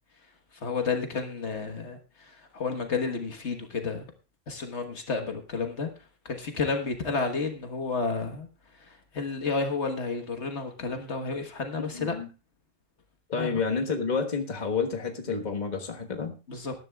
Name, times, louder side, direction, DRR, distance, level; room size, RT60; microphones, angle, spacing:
voice 1, 0.6-4.1 4.5-5.9 6.2-8.5 8.8-12.2 13.4-13.6 16.5-16.7, left 4 dB, 60° left, 5 dB, 1.6 m, -31 dB
voice 2, 11.9-12.3 13.3-16.3, left 5 dB, 35° left, 3 dB, 1.5 m, -29 dB
19.5 x 11.0 x 2.3 m, 0.31 s
omnidirectional pair, 1.3 m